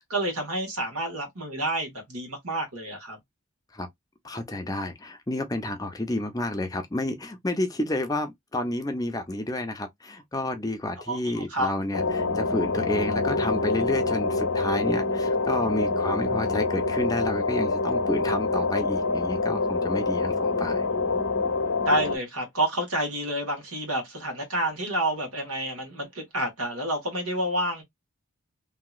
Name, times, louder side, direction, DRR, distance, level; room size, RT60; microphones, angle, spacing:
voice 1, 0.1-3.2 11.1-11.7 21.8-27.8, right 1 dB, 85° right, 1.6 m, -29 dB
voice 2, 4.2-20.9, left 1 dB, 15° left, 0.5 m, -30 dB
sound 1, 11.9-22.2, left 3 dB, 80° left, 0.8 m, -26 dB
2.9 x 2.8 x 2.3 m
head